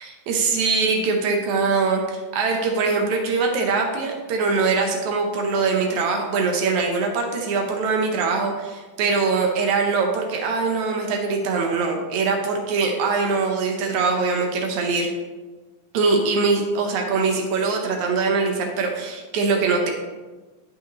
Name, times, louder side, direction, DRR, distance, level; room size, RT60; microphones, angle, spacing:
voice 1, 0.0-15.1 15.9-19.9, right 4 dB, 70° right, 2 dB, 2.0 m, -22 dB
13.0 x 5.5 x 3.0 m, 1.2 s
omnidirectional pair, 4.0 m